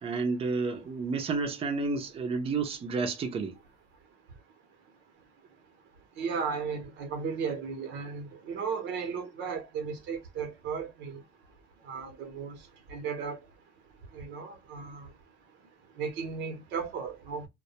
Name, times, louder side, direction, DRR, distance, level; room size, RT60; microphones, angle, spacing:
voice 1, 0.0-3.6, right 4 dB, 30° right, 0.5 m, -31 dB
voice 2, 6.2-11.2 11.9-12.6 12.9-13.4 14.1-15.1 16.0-17.5, right 6 dB, 70° right, 0.7 m, -35 dB
2.2 x 2.1 x 2.7 m
cardioid pair, 135°, 19 cm